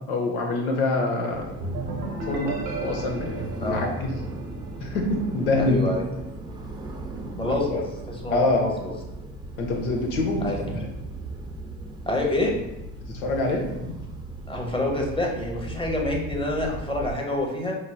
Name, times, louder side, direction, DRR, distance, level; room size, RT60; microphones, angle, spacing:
voice 1, 0.1-1.5 1.8-1.9 2.3-4.2 4.8-5.8 7.5-7.8 8.3-8.6 9.6-10.5 13.1-14.0, left 2 dB, 90° left, 2 dB, 0.7 m, -25 dB
sound 1, 1.3-17.2, right 2 dB, 10° right, 0.5 m, -38 dB
sound 2, 1.6-5.3, right 2 dB, 85° right, 0.8 m, -34 dB
voice 2, 5.6-6.0 7.3-8.9 10.4-10.8 12.1-12.6 14.5-17.8, left 1 dB, 10° left, 0 dB, 0.8 m, -27 dB
5.0 x 2.0 x 2.2 m, 0.94 s
hypercardioid pair, 65°, 42 cm